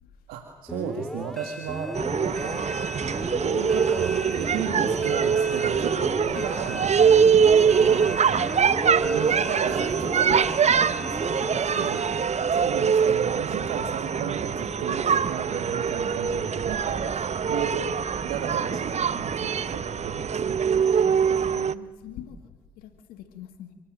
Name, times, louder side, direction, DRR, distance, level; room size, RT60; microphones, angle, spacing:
voice 1, 0.3-2.7 3.4-7.0 7.6-8.3 9.0-10.5 10.7-12.0 12.5-18.0 18.2-20.6 21.3-21.5, right 7 dB, 90° right, 4 dB, 2.2 m, -34 dB
sound 1, 0.7-12.8, left 1 dB, ahead, 2.6 m, -35 dB
sound 2, 2.0-21.7, right 7 dB, 50° right, 1.0 m, -23 dB
voice 2, 10.8-11.9 21.1-23.7, left 10 dB, 85° left, 7 dB, 2.0 m, -44 dB
29.5 x 17.5 x 7.8 m, 1.3 s
supercardioid pair, 50°, 15 cm